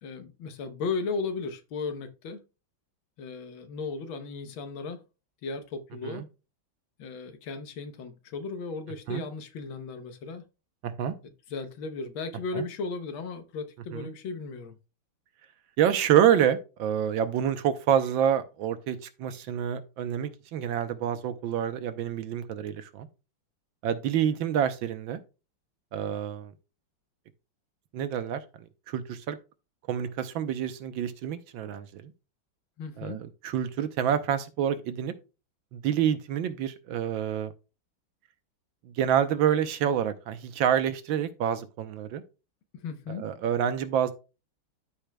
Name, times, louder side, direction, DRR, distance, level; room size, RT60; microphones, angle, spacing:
voice 1, 0.0-2.4 3.2-5.0 5.4-6.2 7.0-10.4 11.2-14.8 32.8-33.2 42.8-43.3, left 4 dB, 80° left, 1.7 m, -36 dB
voice 2, 10.8-11.1 12.5-12.7 13.9-14.1 15.8-23.1 23.8-25.2 25.9-26.5 27.9-28.4 28.9-29.4 29.9-32.1 33.0-35.1 35.7-37.5 38.9-42.2 43.2-44.1, right 9 dB, 80° right, 1.5 m, -27 dB
13.0 x 5.0 x 2.2 m
omnidirectional pair, 2.2 m